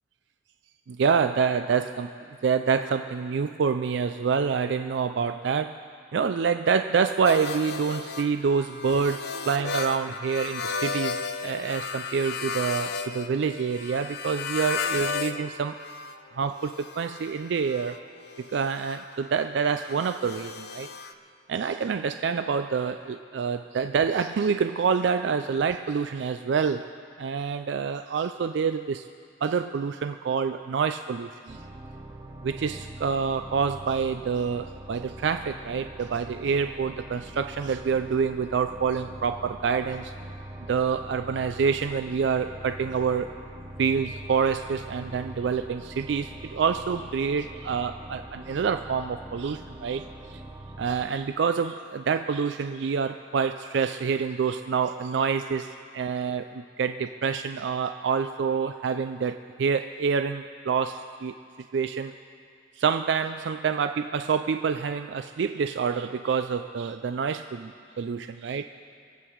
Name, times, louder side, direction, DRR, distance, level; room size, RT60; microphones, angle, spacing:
voice 1, 0.9-5.8 6.1-15.8 16.3-18.0 18.4-20.9 21.5-26.9 27.2-29.0 29.4-31.6 32.4-40.1 40.7-43.3 43.8-50.4 50.8-61.4 61.7-62.1 62.8-68.7, right 6 dB, 65° right, 9 dB, 0.4 m, -27 dB
sound 1, 7.2-15.4 15.7-21.1, left 5 dB, 60° left, 0.6 m, -35 dB
sound 2, 31.5-51.1, right 1 dB, 20° right, 0.9 m, -43 dB
25.0 x 8.3 x 4.6 m, 2.3 s
head